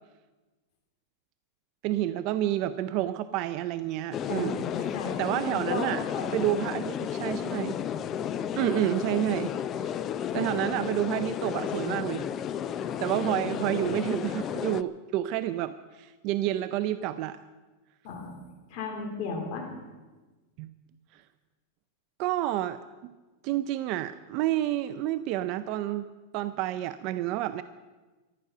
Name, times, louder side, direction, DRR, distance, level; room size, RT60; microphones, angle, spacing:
voice 1, 1.8-4.6 5.2-6.0 6.3-7.8 8.6-9.5 9.8-9.9 10.3-12.2 13.0-17.4 20.6-20.7 22.2-22.8 23.4-27.6, right 13 dB, 45° right, 11 dB, 0.5 m, -29 dB
sound 1, 4.1-14.8, left 9 dB, 25° left, 0.5 m, -33 dB
voice 2, 4.3-5.2 5.7-5.8 6.1-6.5 18.0-18.4 18.7-19.7, left 4 dB, 45° left, 1 dB, 3.1 m, -35 dB
14.0 x 12.0 x 6.7 m, 1.2 s
supercardioid pair, 155°, 0 cm